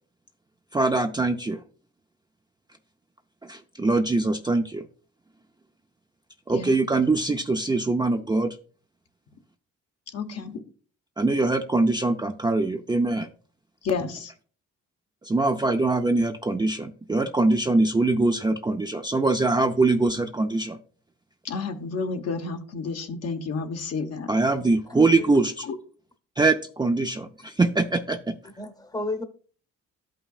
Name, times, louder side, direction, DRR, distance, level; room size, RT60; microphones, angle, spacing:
voice 1, 0.7-1.6 3.4-4.8 6.5-8.6 11.2-13.3 15.2-20.8 24.3-25.7 26.4-28.4, right 3 dB, 15° right, 0.5 m, -23 dB
voice 2, 10.1-10.6 13.8-14.3 21.4-24.3 25.7-25.8, left 4 dB, 55° left, 1.1 m, -30 dB
voice 3, 24.9-25.3 28.4-29.2, left 1 dB, 10° left, 0.9 m, -32 dB
12.5 x 5.6 x 2.4 m
cardioid pair, 90°, 30 cm